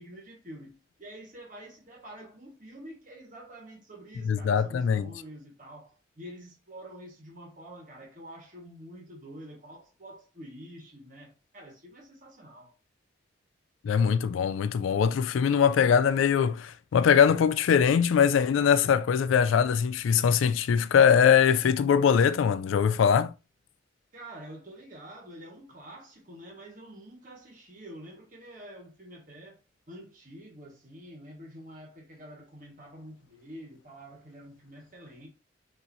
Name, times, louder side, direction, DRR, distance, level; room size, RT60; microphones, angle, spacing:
voice 1, 0.0-12.7 24.1-29.6 29.9-35.3, right 1 dB, 45° right, 1.4 m, -47 dB
voice 2, 4.3-5.1 13.8-23.3, left 7 dB, 85° left, 0.3 m, -22 dB
5.6 x 2.9 x 2.6 m
head